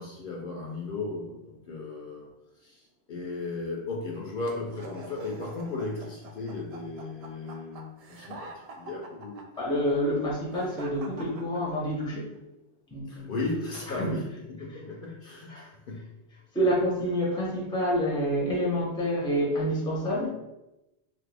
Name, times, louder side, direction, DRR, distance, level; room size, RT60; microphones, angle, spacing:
voice 1, 0.0-2.3 2.6-9.5 13.1-16.1, left 3 dB, 60° left, -2 dB, 0.7 m, -36 dB
sound 1, 4.7-12.1, right 2 dB, 60° right, 0.4 m, -46 dB
voice 2, 9.6-12.4 12.9-13.3 14.0-14.1 15.5-15.7 16.5-20.3, equal, 5° left, -4 dB, 0.6 m, -28 dB
2.7 x 2.5 x 3.3 m, 0.94 s
omnidirectional pair, 1.1 m